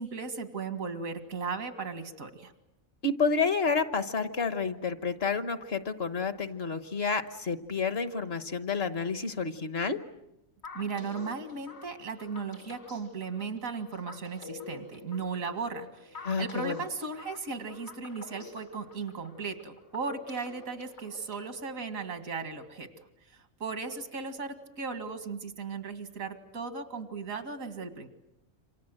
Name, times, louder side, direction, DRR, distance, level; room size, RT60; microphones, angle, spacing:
voice 1, 0.0-2.5 10.7-22.9 23.3-28.1, right 4 dB, 85° right, 9 dB, 2.5 m, -36 dB
voice 2, 3.0-10.0 16.2-16.8, left 4 dB, 50° left, 11 dB, 1.4 m, -30 dB
sound 1, 10.6-21.7, left 3 dB, 85° left, 4.8 m, -48 dB
28.0 x 26.0 x 7.8 m, 0.88 s
omnidirectional pair, 1.4 m